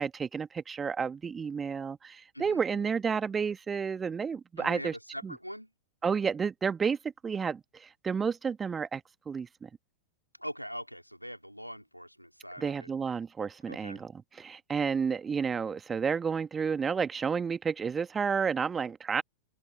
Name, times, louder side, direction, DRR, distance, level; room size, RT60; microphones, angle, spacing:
voice 1, 0.0-4.9 5.2-5.3 6.0-7.0 7.2-7.6 8.0-9.7 12.6-14.1 14.4-19.2, right 6 dB, 20° right, 1.8 m, -31 dB
voice 2, 2.3-2.9 4.6-5.7 10.4-12.9 13.7-14.0, equal, 90° right, 4.2 m, -42 dB
figure-of-eight pair, 90°, 0 cm